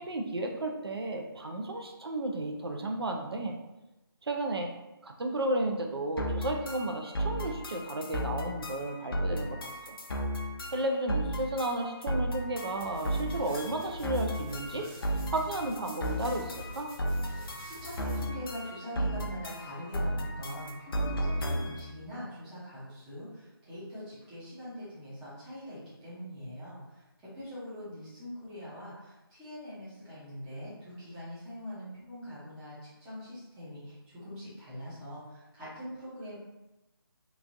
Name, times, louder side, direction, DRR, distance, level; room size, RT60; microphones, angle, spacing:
voice 1, 0.0-3.5 4.2-4.7 5.0-10.0 10.7-14.9 15.3-16.9, right 1 dB, 80° right, 3 dB, 0.6 m, -33 dB
sound 1, 6.2-21.9, equal, 65° left, 0.5 m, -34 dB
sound 2, 12.8-18.2, equal, 30° right, 1.0 m, -47 dB
voice 2, 17.4-26.8 27.2-36.4, equal, 5° right, -11 dB, 0.5 m, -43 dB
3.1 x 2.4 x 2.5 m, 1.0 s
figure-of-eight pair, 165°, 13 cm